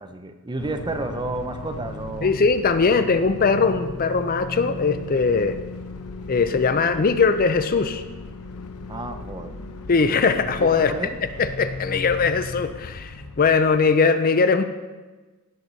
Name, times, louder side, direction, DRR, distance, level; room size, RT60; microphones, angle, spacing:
voice 1, 0.0-2.3 8.9-9.6 10.6-11.2, right 2 dB, 20° right, 7 dB, 0.6 m, -31 dB
sound 1, 0.6-14.0, left 3 dB, 75° left, 0.8 m, -36 dB
voice 2, 2.2-5.6 6.3-8.0 9.9-10.9 11.4-14.6, left 4 dB, 40° left, 10 dB, 0.5 m, -20 dB
16.0 x 6.6 x 4.1 m, 1.3 s
head